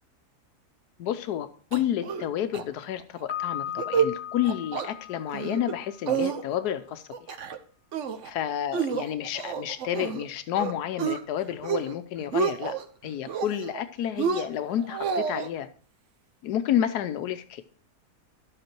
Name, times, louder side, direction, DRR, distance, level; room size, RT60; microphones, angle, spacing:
voice 1, 1.0-7.4 8.2-12.8 13.0-15.7 16.4-17.6, left 11 dB, 90° left, 10 dB, 1.2 m, -30 dB
sound 1, 1.7-2.3 2.5-2.6 3.0-3.3 3.7-4.1 4.4-4.9 5.3-5.7 6.1-6.7 7.1-7.6 7.9-8.3 8.7-10.2 10.6-11.2 11.6-11.9 12.2-12.8 13.3-13.8 14.2-15.5, right 7 dB, 55° right, 1.1 m, -29 dB
Piano, 3.3-6.2, left 10 dB, 35° left, 0.8 m, -37 dB
12.0 x 7.9 x 4.5 m, 0.44 s
omnidirectional pair, 1.7 m